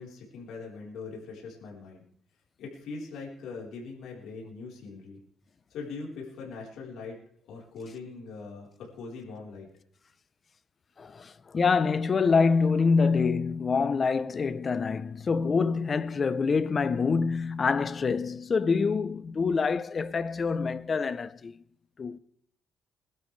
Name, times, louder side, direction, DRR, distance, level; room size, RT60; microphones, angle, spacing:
voice 1, 0.0-2.0 2.6-5.2 5.7-7.2 7.4-9.7, left 4 dB, 80° left, 4.2 m, -41 dB
voice 2, 11.0-21.5 22.0-22.2, left 5 dB, 40° left, 0.8 m, -26 dB
22.0 x 12.5 x 3.4 m
cardioid pair, 90°, 0 cm